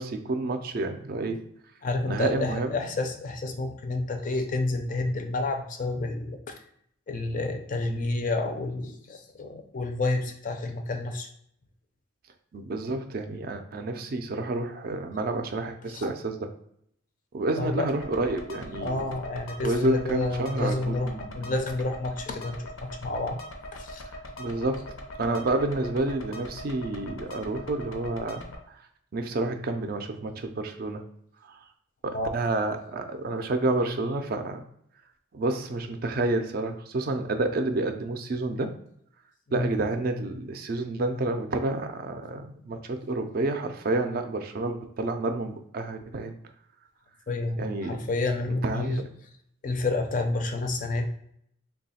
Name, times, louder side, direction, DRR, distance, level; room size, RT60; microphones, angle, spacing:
voice 1, 0.0-1.4 2.0-2.8 12.5-16.5 17.3-19.1 19.6-21.5 24.4-24.9 25.2-28.4 28.7-28.8 29.1-31.0 32.0-34.6 35.3-38.7 39.5-46.3 47.6-48.0 48.6-49.1, right 2 dB, 45° right, 6 dB, 0.3 m, -29 dB
voice 2, 1.8-6.6 7.1-11.3 15.9-16.1 17.6-17.9 18.8-23.4 23.7-24.0 32.1-32.3 39.5-39.7 47.3-49.0 49.6-51.1, left 2 dB, 40° left, 5 dB, 0.4 m, -29 dB
sound 1, 17.9-28.6, left 1 dB, 85° left, 0.6 m, -42 dB
3.1 x 2.2 x 4.1 m, 0.69 s
head